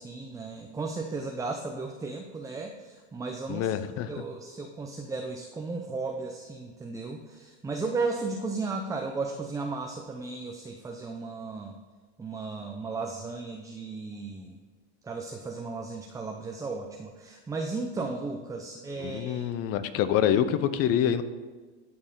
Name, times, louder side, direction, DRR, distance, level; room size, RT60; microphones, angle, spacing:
voice 1, 0.0-3.8 4.1-11.7 12.2-14.6 15.0-19.5, right 3 dB, 10° right, 3 dB, 0.5 m, -35 dB
voice 2, 3.5-4.1 19.0-21.2, left 10 dB, 45° left, 13 dB, 0.6 m, -26 dB
12.5 x 4.3 x 3.8 m, 1.4 s
hypercardioid pair, 105°, 35 cm